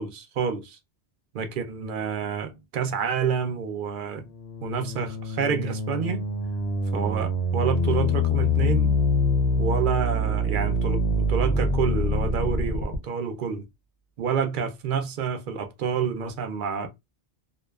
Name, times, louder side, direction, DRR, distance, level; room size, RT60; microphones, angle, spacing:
voice 1, 0.0-0.8 1.3-4.2 4.6-6.2 6.9-8.9 9.6-13.6 14.2-16.9, right 6 dB, 60° right, 0.6 m, -28 dB
sound 1, 4.2-13.0, left 1 dB, 75° left, 0.9 m, -25 dB
2.4 x 2.2 x 2.3 m
omnidirectional pair, 1.1 m